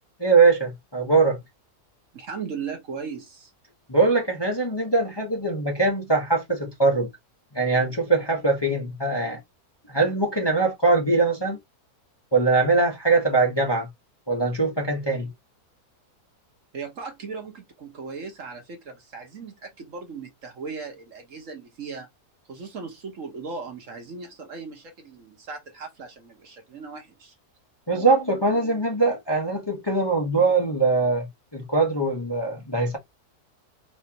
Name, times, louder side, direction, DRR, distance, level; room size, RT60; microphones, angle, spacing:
voice 1, 0.2-1.4 3.9-7.1 7.5-9.4 9.9-11.6 12.3-13.9 14.3-15.3 27.9-31.3 31.5-33.0, right 3 dB, 20° left, 0.9 m, -22 dB
voice 2, 2.1-3.5 16.7-22.1 22.5-27.3, right 5 dB, 55° right, 1.5 m, -37 dB
4.4 x 3.5 x 2.8 m
omnidirectional pair, 1.7 m